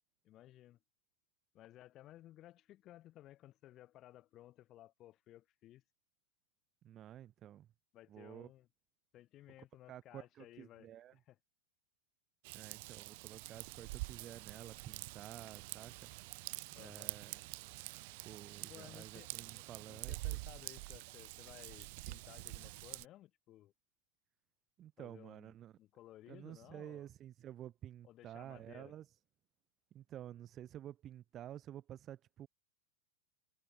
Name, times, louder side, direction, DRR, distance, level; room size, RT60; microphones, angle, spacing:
voice 1, 0.2-0.8 1.5-5.8 7.9-8.7 9.1-11.4 16.7-17.1 18.7-23.7 25.0-25.5 25.8-27.1 28.0-29.0, left 14 dB, 40° left, 6.2 m, -58 dB
voice 2, 6.8-7.7 8.1-8.5 9.9-11.2 12.5-16.1 16.8-17.5 18.2-20.4 24.8-25.8 26.3-29.2 29.9-32.5, right 11 dB, 35° right, 4.9 m, -51 dB
Raindrop / Vehicle horn car horn honking / Trickle dribble, 12.4-23.0, right 26 dB, 60° right, 0.6 m, -46 dB
hypercardioid pair, 120°, 0 cm